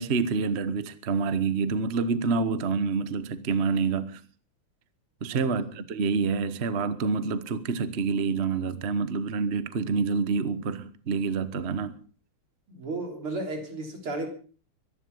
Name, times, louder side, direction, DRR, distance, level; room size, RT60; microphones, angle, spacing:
voice 1, 0.0-4.2 5.2-12.0, right 5 dB, 40° right, 1.1 m, -27 dB
voice 2, 5.3-5.7 12.7-14.3, right 2 dB, 85° right, 4.6 m, -34 dB
23.5 x 11.0 x 5.5 m
omnidirectional pair, 2.3 m